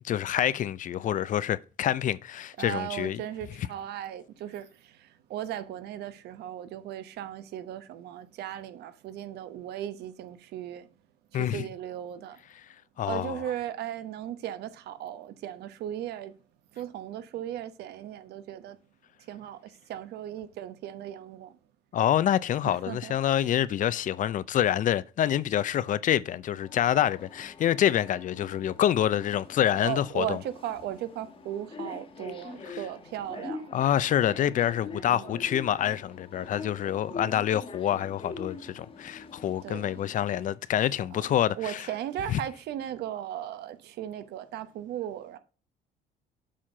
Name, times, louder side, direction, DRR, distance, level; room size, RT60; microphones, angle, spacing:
voice 1, 0.0-3.2 11.3-11.7 13.0-13.4 21.9-30.4 32.6-32.8 33.7-41.9 42.3-42.4, left 11 dB, 50° left, 0.5 m, -27 dB
voice 2, 2.6-10.9 11.3-12.4 13.0-16.3 16.7-18.8 19.3-21.6 22.6-23.1 29.8-33.7 35.1-35.4 37.1-37.3 39.6-39.9 41.1-41.3 41.6-45.4, right 11 dB, 75° right, 1.0 m, -37 dB
sound 1, 26.6-40.6, left 3 dB, 35° left, 1.3 m, -44 dB
7.5 x 4.3 x 4.9 m
cardioid pair, 110°, 17 cm